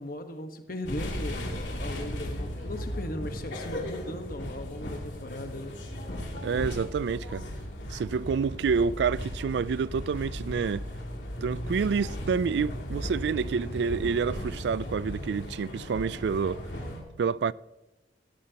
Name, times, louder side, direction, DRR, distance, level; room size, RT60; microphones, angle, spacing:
voice 1, 0.0-5.7, left 1 dB, 50° left, 1.3 m, -38 dB
sound 1, 0.8-17.0, equal, 90° left, 2.7 m, -36 dB
voice 2, 6.4-7.5 7.9-10.9 11.4-16.6 17.2-17.5, right 5 dB, 70° right, 0.3 m, -28 dB
17.5 x 14.5 x 2.9 m
head